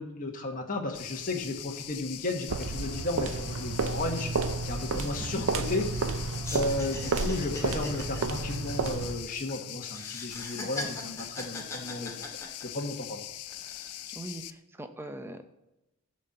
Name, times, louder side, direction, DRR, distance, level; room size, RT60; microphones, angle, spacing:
voice 1, 0.0-4.3 4.6-6.2 6.5-12.3 12.6-13.2, left 2 dB, 40° left, 1 dB, 1.4 m, -34 dB
sound 1, 0.9-14.5, left 13 dB, 90° left, 0.5 m, -42 dB
sound 2, 2.5-9.3, right 3 dB, 60° right, 0.6 m, -31 dB
voice 2, 4.0-4.3 4.9-5.4 14.1-15.4, right 1 dB, 10° right, 7 dB, 0.7 m, -42 dB
sound 3, 4.9-6.2 6.4-9.5 9.9-13.0 13.5-14.0, left 2 dB, 15° left, 2.1 m, -40 dB
13.0 x 4.4 x 7.8 m, 0.93 s
head